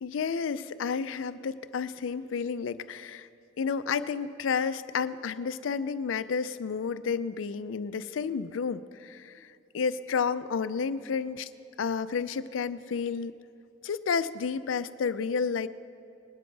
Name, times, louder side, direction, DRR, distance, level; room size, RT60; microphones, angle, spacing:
voice 1, 0.0-3.3 3.6-11.5 11.8-13.4 13.8-15.7, left 5 dB, 80° left, 14 dB, 0.4 m, -31 dB
20.0 x 12.0 x 3.3 m, 2.6 s
head